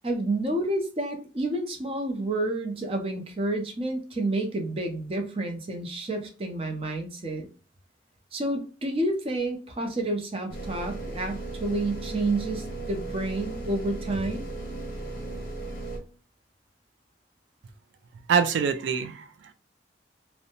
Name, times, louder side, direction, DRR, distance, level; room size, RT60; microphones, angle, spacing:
voice 1, 0.0-7.5 8.3-14.5, right 2 dB, 30° right, 3 dB, 0.5 m, -29 dB
sound 1, 10.5-16.0, right 2 dB, 50° left, 0.8 m, -36 dB
voice 2, 18.3-19.5, right 6 dB, 85° right, 9 dB, 0.3 m, -25 dB
2.6 x 2.1 x 2.8 m, 0.37 s
head